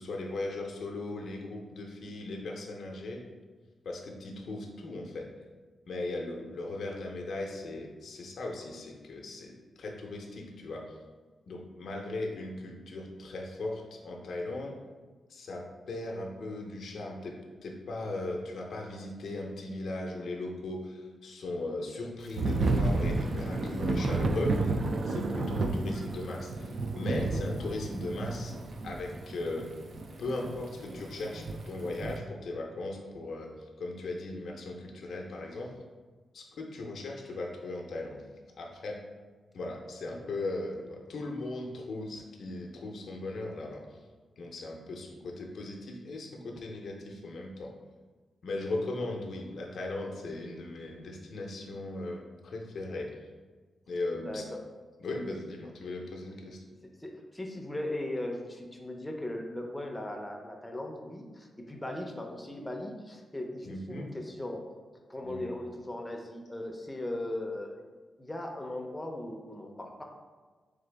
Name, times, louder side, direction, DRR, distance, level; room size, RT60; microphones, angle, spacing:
voice 1, 0.0-3.2 3.8-5.3 5.9-11.0 11.5-14.8 15.3-24.8 25.1-28.6 28.8-29.7 30.2-35.8 36.3-38.3 38.6-39.0 39.5-44.0 44.4-47.7 48.4-53.2 53.9-54.5 55.0-56.6 63.7-64.1 65.2-65.5, left 2 dB, 65° left, 0 dB, 0.6 m, -38 dB
Thunder / Rain, 22.4-32.2, right 2 dB, 50° right, 0.3 m, -31 dB
voice 2, 54.1-54.6 56.8-64.6 65.1-67.8 68.2-70.0, left 1 dB, 10° left, 2 dB, 0.5 m, -38 dB
3.8 x 3.4 x 3.3 m, 1.4 s
wide cardioid pair, 130°, 0 cm